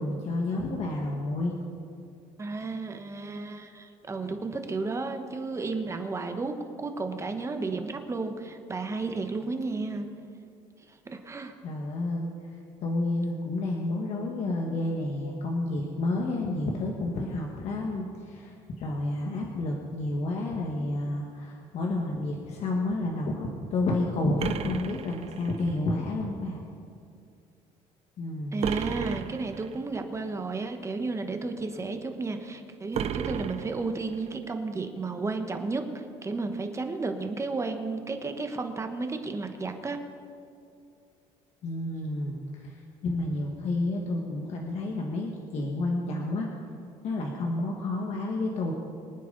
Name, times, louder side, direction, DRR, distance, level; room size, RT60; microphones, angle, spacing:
voice 1, 0.0-1.5 11.6-12.3 12.8-26.6 28.2-28.6 41.6-46.5 47.0-48.7, left 2 dB, 55° left, 0 dB, 1.8 m, -30 dB
voice 2, 2.4-10.1 11.0-11.5 28.5-40.0, right 3 dB, 20° right, 6 dB, 1.3 m, -33 dB
sound 1, 24.4-25.8 28.6-29.8 32.9-34.3, right 8 dB, 50° right, 0.7 m, -34 dB
25.0 x 9.3 x 4.1 m, 2.4 s
cardioid pair, 120°, 13 cm